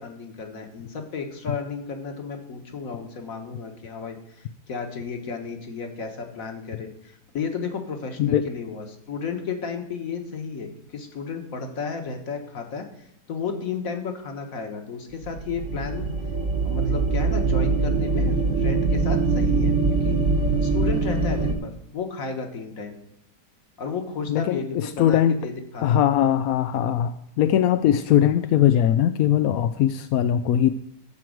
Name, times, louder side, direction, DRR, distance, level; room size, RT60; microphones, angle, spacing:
voice 1, 0.0-16.1 16.6-19.8 20.0-20.2 20.6-23.0 23.8-26.0, left 5 dB, 55° left, 5 dB, 1.8 m, -33 dB
sound 1, 15.2-21.6, right 3 dB, 50° right, 1.5 m, -23 dB
voice 2, 24.3-25.4 25.8-30.7, left 10 dB, 70° left, 10 dB, 0.9 m, -20 dB
13.5 x 4.6 x 7.7 m, 0.83 s
omnidirectional pair, 1.8 m